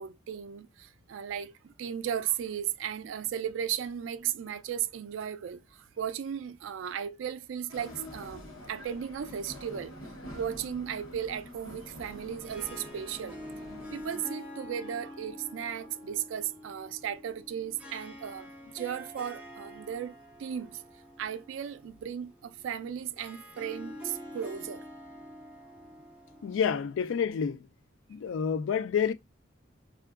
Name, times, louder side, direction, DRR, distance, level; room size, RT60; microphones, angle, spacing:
voice 1, 0.0-9.9 10.3-13.4 13.9-20.8 21.2-24.8, right 9 dB, 65° right, 0.3 m, -36 dB
sound 1, 7.7-14.2, left 1 dB, 90° left, 0.9 m, -46 dB
Harp, 12.1-27.4, equal, 5° right, 0.7 m, -47 dB
voice 2, 26.4-27.6 28.1-29.1, left 7 dB, 65° left, 0.3 m, -28 dB
3.6 x 2.4 x 2.3 m
head